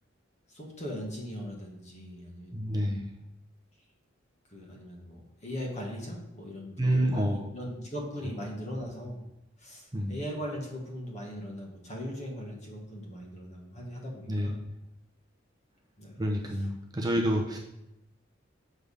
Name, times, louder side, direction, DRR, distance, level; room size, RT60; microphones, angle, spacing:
voice 1, 0.5-2.7 4.5-9.2 9.6-14.6 16.0-16.2, equal, 35° left, -1 dB, 1.5 m, -39 dB
voice 2, 2.5-3.1 6.8-7.5 9.9-10.2 14.3-14.5 16.2-17.6, equal, 20° right, -1 dB, 0.7 m, -28 dB
6.5 x 3.5 x 5.3 m, 0.87 s
head